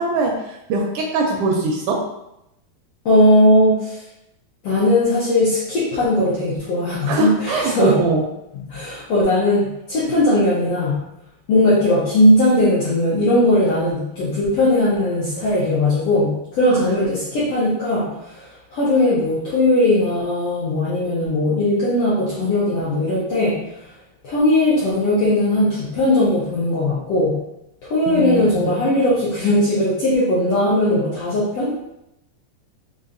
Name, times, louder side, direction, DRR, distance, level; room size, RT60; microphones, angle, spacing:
voice 1, 0.0-2.0 7.1-8.2 16.7-16.9 28.1-28.7, right 3 dB, 80° right, 0 dB, 1.8 m, -22 dB
voice 2, 3.0-4.0 4.6-8.0 8.6-11.0 11.5-23.6 24.2-27.4 27.8-31.9, left 1 dB, 75° left, -8 dB, 1.4 m, -18 dB
5.2 x 2.4 x 2.6 m, 0.85 s
omnidirectional pair, 3.6 m